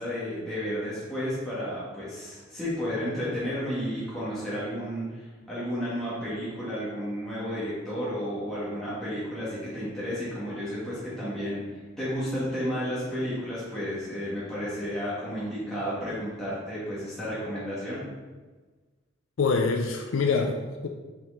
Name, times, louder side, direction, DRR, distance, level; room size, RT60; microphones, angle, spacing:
voice 1, 0.0-18.0, equal, ahead, -11 dB, 1.5 m, -32 dB
voice 2, 19.4-20.9, left 4 dB, 85° left, 3 dB, 0.5 m, -25 dB
5.8 x 4.5 x 3.7 m, 1.3 s
head